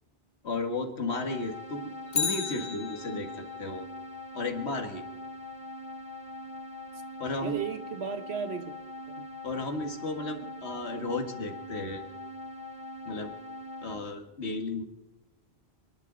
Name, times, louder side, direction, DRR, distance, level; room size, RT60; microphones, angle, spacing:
voice 1, 0.4-3.9 4.3-5.0 7.2-7.7 9.4-12.0 13.1-13.3 13.8-14.8, left 2 dB, 90° left, 4 dB, 2.0 m, -34 dB
sound 1, 1.1-14.0, left 2 dB, 30° right, 1.5 m, -42 dB
Bicycle, 2.1-3.5 11.8-11.9, left 6 dB, 50° left, 0.8 m, -33 dB
voice 2, 7.4-8.7 9.2-9.3, right 6 dB, 80° right, 9 dB, 1.3 m, -35 dB
28.0 x 11.0 x 3.9 m, 1.0 s
omnidirectional pair, 1.1 m